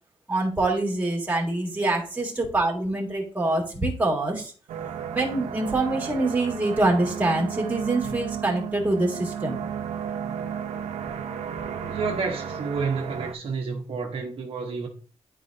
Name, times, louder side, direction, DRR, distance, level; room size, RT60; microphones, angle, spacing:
voice 1, 0.3-4.5 5.1-9.6, right 2 dB, 15° right, 1.9 m, -25 dB
sound 1, 4.7-13.3, right 8 dB, 90° right, 0.6 m, -33 dB
voice 2, 11.9-14.9, right 4 dB, 60° right, 1.1 m, -30 dB
10.5 x 4.1 x 2.6 m
cardioid pair, 125°, 11 cm